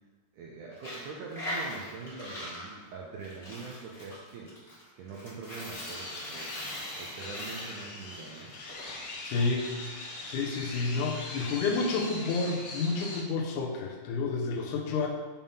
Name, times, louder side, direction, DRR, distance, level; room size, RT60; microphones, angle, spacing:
voice 1, 0.3-4.6 5.0-6.5 7.0-8.6, right 4 dB, 75° right, -2 dB, 1.9 m, -43 dB
Coin (dropping), 0.7-8.9, left 1 dB, 25° left, 1.6 m, -41 dB
sound 1, 5.7-13.2, left 2 dB, 60° left, 1.4 m, -41 dB
voice 2, 9.2-10.0 10.3-15.1, left 4 dB, 80° left, 0 dB, 1.9 m, -30 dB
7.2 x 3.7 x 5.5 m, 1.2 s
omnidirectional pair, 4.2 m